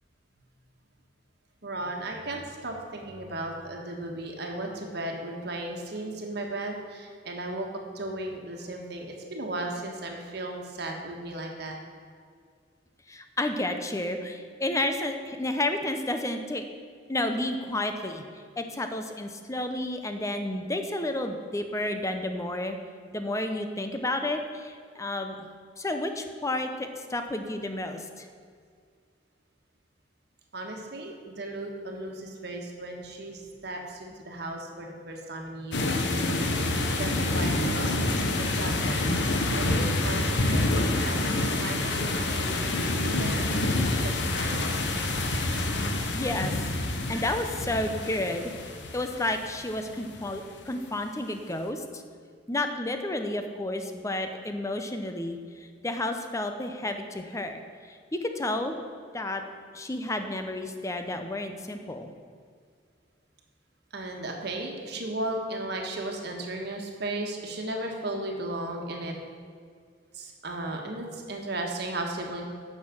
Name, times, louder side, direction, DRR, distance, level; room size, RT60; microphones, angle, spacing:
voice 1, 1.6-7.7 7.9-11.8 30.5-36.0 37.0-37.9 38.4-39.1 39.5-40.7 41.0-45.0 63.9-69.1 70.1-72.4, right 1 dB, 60° right, 1 dB, 1.5 m, -35 dB
voice 2, 13.1-16.6 17.1-18.2 18.6-22.8 23.1-25.4 25.8-28.3 46.1-46.7 47.1-48.5 48.9-52.0 52.5-58.8 59.1-59.4 59.7-62.1, left 1 dB, 15° left, 6 dB, 0.7 m, -31 dB
sound 1, 35.7-50.3, left 2 dB, 65° left, 0.9 m, -27 dB
9.8 x 6.6 x 6.1 m, 2.1 s
head